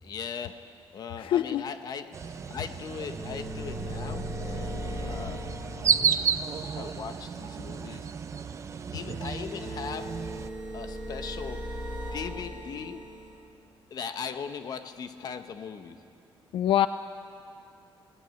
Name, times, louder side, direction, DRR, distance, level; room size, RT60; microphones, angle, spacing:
voice 1, 0.0-6.2 6.7-8.1 8.9-10.2 10.7-11.7 12.1-13.1 13.9-16.0, left 6 dB, 45° left, 9 dB, 1.1 m, -39 dB
voice 2, 1.2-1.6 16.5-16.9, left 11 dB, 75° left, 11 dB, 0.5 m, -24 dB
sound 1, 2.1-10.5, right 7 dB, 35° right, 0.7 m, -32 dB
sound 2, 3.1-6.6 8.9-13.4, equal, 10° right, 5.9 m, -38 dB
21.5 x 18.0 x 9.4 m, 2.6 s
cardioid pair, 160°, 9 cm